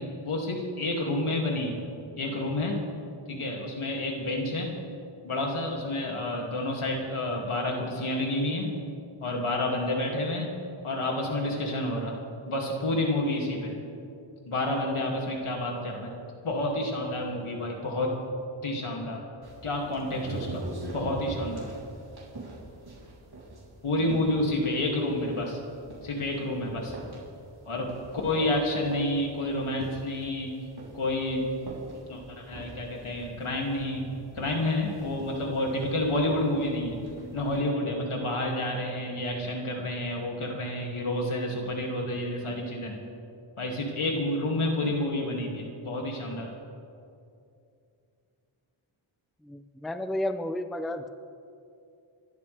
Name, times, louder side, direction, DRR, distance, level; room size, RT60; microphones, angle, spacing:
voice 1, 0.0-1.8 2.2-2.8 3.3-4.8 5.2-8.7 9.2-10.5 10.8-12.2 12.5-13.7 14.5-16.1 16.4-18.1 18.6-19.2 19.6-20.6 20.9-21.7 23.8-25.6 26.0-26.9 27.7-27.9 28.2-30.6 30.9-31.5 32.1-37.0 37.3-43.1 43.6-46.5, left 1 dB, 80° left, -1 dB, 2.7 m, -29 dB
sound 1, 19.4-37.6, right 2 dB, 50° right, 3.7 m, -44 dB
voice 2, 49.4-51.1, left 1 dB, ahead, 9 dB, 0.5 m, -32 dB
27.5 x 12.0 x 3.5 m, 2.6 s
wide cardioid pair, 105°, 49 cm